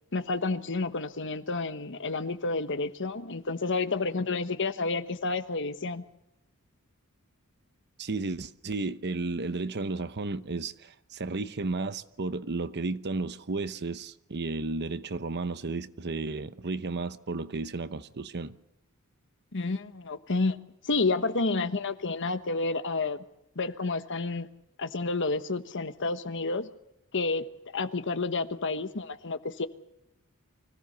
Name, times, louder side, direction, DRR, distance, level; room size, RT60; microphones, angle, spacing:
voice 1, 0.1-6.0 19.5-20.6 20.8-23.2 23.5-24.5 24.8-26.7 27.1-29.7, left 3 dB, 60° left, 1.2 m, -30 dB
voice 2, 8.0-18.5, right 3 dB, 50° right, 0.9 m, -33 dB
25.0 x 17.0 x 6.8 m
head